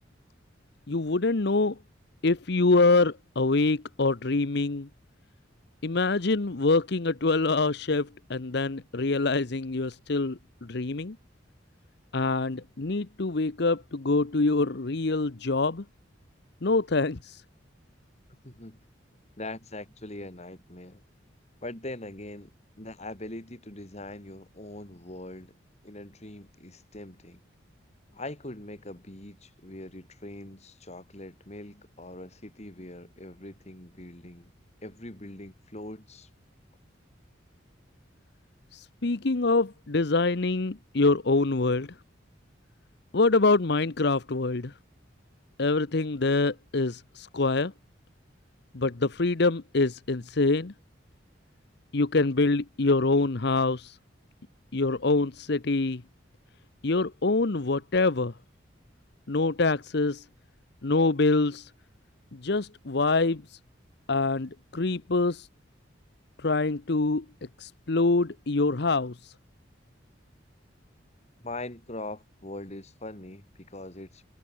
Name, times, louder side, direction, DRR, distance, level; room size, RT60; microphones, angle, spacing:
voice 1, 0.9-1.8 2.2-4.9 5.8-11.2 12.1-15.8 16.6-17.4 38.7-41.9 43.1-44.7 45.6-47.7 48.7-50.7 51.9-54.0 54.7-56.0 56.8-58.3 59.3-60.2 60.8-61.7 62.3-63.6 64.1-65.5 66.4-67.2 67.6-69.3, left 3 dB, 60° left, 0.9 m, -25 dB
voice 2, 18.4-18.8 19.4-21.0 21.6-22.5 22.8-25.6 25.8-27.4 28.1-34.5 34.8-36.3 71.4-74.3, left 2 dB, 35° left, 3.2 m, -42 dB
head